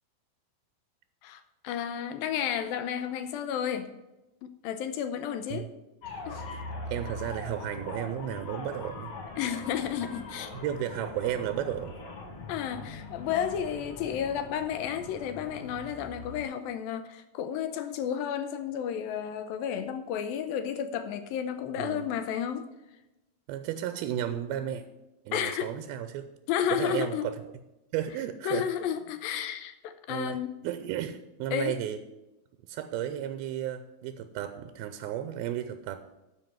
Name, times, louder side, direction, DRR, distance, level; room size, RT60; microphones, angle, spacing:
voice 1, 1.2-3.9 4.4-5.7 6.3-6.4 9.4-10.5 12.5-22.7 25.3-25.7 26.5-27.3 28.4-30.6 31.5-31.8, left 9 dB, 80° left, 9 dB, 2.4 m, -32 dB
sound 1, 6.0-16.4, left 3 dB, 45° left, 1.8 m, -42 dB
voice 2, 6.9-9.1 10.5-12.0 21.8-22.1 23.5-24.8 25.3-26.3 26.7-27.4 27.9-28.7 30.1-30.4 30.6-32.0 32.7-36.0, right 11 dB, 90° right, 9 dB, 2.5 m, -33 dB
12.0 x 4.8 x 7.2 m, 0.98 s
omnidirectional pair, 4.3 m